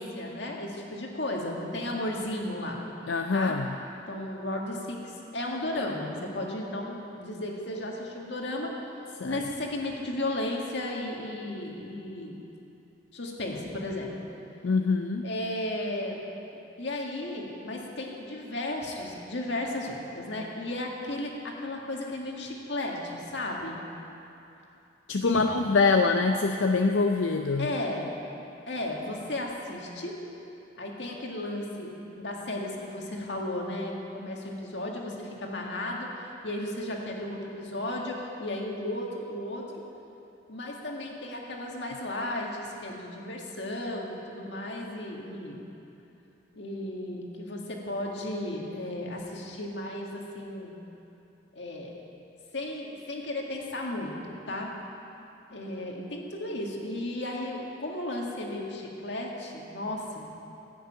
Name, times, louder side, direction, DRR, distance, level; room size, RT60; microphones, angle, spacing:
voice 1, 0.0-2.8 3.3-3.5 4.1-8.7 9.2-12.4 13.1-14.3 15.2-16.2 16.8-23.9 25.2-25.4 27.6-28.2 28.7-30.2 30.8-36.1 36.4-39.7 40.5-45.6 46.5-50.8 51.6-51.9 52.5-54.7 55.5-60.3, left 1 dB, 65° left, -1 dB, 1.9 m, -34 dB
voice 2, 3.1-3.7 9.2-9.4 14.6-15.3 25.1-27.7, left 4 dB, 85° left, 5 dB, 0.5 m, -24 dB
15.0 x 6.6 x 9.0 m, 2.9 s
head